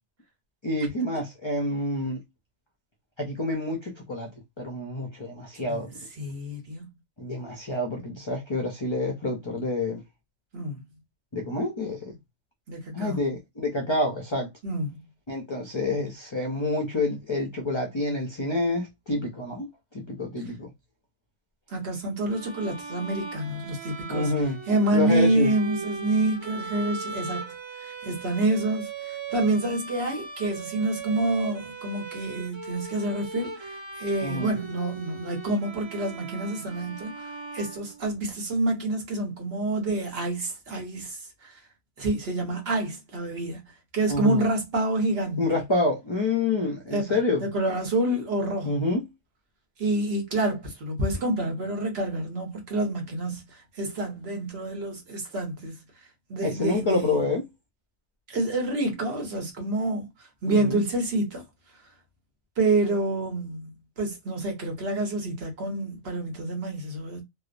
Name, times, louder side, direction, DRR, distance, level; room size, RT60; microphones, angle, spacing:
voice 1, 0.6-2.2 3.2-4.3 4.6-5.9 7.2-10.0 11.3-12.1 12.9-14.5 15.3-20.7 24.1-24.6 24.9-25.5 34.2-34.5 44.1-44.4 45.4-47.5 48.6-49.1 56.4-57.4 60.5-60.8, left 2 dB, 40° left, 0.4 m, -28 dB
voice 2, 5.5-5.9 6.2-6.9 10.5-10.9 12.7-13.2 14.6-15.0 21.7-24.3 24.7-27.5 27.8-41.6 42.0-43.6 43.9-45.4 46.9-47.1 47.4-48.8 49.8-55.8 56.3-57.3 58.3-61.4 62.6-63.7 64.0-67.2, right 2 dB, 60° right, 1.1 m, -28 dB
Bowed string instrument, 22.3-38.4, right 4 dB, 40° right, 0.4 m, -39 dB
3.0 x 2.0 x 2.4 m
omnidirectional pair, 1.2 m